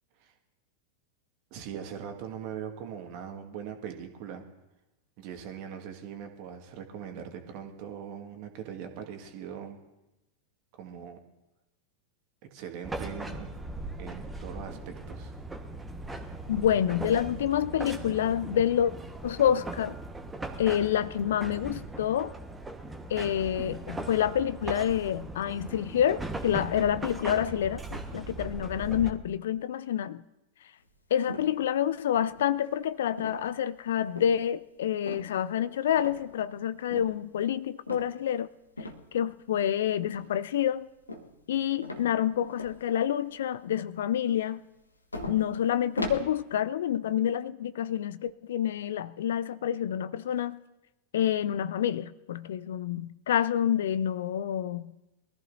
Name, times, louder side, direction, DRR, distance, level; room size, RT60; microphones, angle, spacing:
voice 1, 1.5-4.4 5.2-9.8 10.7-11.2 12.5-13.5 14.0-15.3, right 8 dB, 45° right, 5 dB, 1.9 m, -41 dB
sound 1, 12.8-29.1, right 2 dB, 10° right, 1.4 m, -39 dB
voice 2, 16.5-18.9 19.2-20.0 20.6-22.3 23.1-30.2 31.1-38.5 38.8-40.9 41.5-44.6 45.3-50.6 51.1-54.9, left 10 dB, 60° left, 15 dB, 0.5 m, -28 dB
sound 2, 31.3-31.8 32.2-32.7 33.2-33.6 34.2-34.4 35.1-35.4 35.9-36.5 36.9-37.2 37.9-38.1 38.8-39.1 40.0-40.5 41.1-41.6 41.8-42.8 43.3-43.4 44.8-44.9 45.1-46.2, left 2 dB, 80° left, 1.5 m, -38 dB
23.0 x 14.5 x 2.8 m, 0.96 s
figure-of-eight pair, 90°, 0 cm